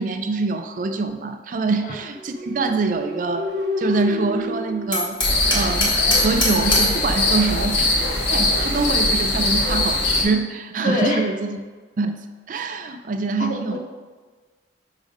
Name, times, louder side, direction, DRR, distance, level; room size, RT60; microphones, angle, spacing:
voice 1, 0.0-7.9 8.3-11.6 12.0-13.8, right 3 dB, 45° right, 7 dB, 0.4 m, -25 dB
sound 1, 2.1-6.0, left 1 dB, 80° right, 1.0 m, -29 dB
Hammer, 4.9-7.0, left 2 dB, 25° left, 1.4 m, -23 dB
sound 2, 5.2-10.2, left 2 dB, 70° left, 1.4 m, -21 dB
voice 2, 10.8-11.3 13.4-13.8, left 1 dB, 45° left, -2 dB, 1.1 m, -24 dB
5.0 x 4.9 x 5.3 m, 1.4 s
head